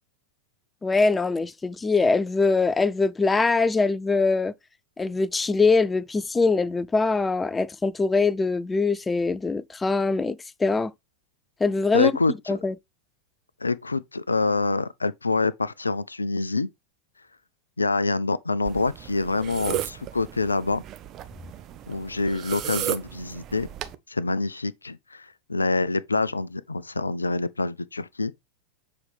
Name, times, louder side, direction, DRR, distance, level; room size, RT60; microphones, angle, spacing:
voice 1, 0.8-4.5 5.0-10.9 11.6-12.1 12.5-12.7, left 3 dB, 10° left, 0.3 m, -23 dB
voice 2, 11.9-12.3 13.6-16.7 17.8-20.8 21.9-23.7 24.1-28.3, left 3 dB, 80° left, 0.4 m, -26 dB
sound 1, 18.7-24.0, right 12 dB, 35° right, 0.6 m, -35 dB
7.2 x 4.6 x 3.2 m
figure-of-eight pair, 90°, 0 cm